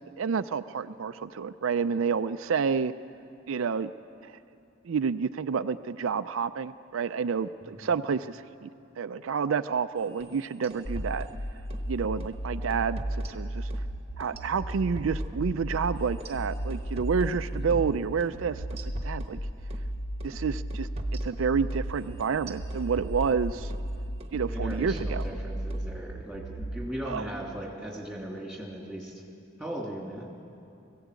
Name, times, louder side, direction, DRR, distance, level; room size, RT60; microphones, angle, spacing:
voice 1, 0.2-2.9 3.5-3.9 4.2-4.3 4.8-8.7 9.0-11.3 11.9-13.7 14.2-19.4 20.2-20.9 21.2-23.7 24.3-25.2 27.1-27.3, right 6 dB, 75° right, 11 dB, 0.4 m, -29 dB
sound 1, 10.1-11.9 12.2-12.4 12.7-13.9 14.2-17.9 18.2-18.4 18.7-19.9 20.2-20.4 20.7-23.9 24.2-24.4 24.7-25.9, right 1 dB, 30° right, 1.1 m, -44 dB
sound 2, 10.8-26.8, right 1 dB, 60° left, 1.0 m, -34 dB
voice 2, 24.5-29.2 29.6-30.3, right 1 dB, ahead, -2 dB, 2.9 m, -38 dB
20.5 x 16.0 x 8.2 m, 2.7 s
head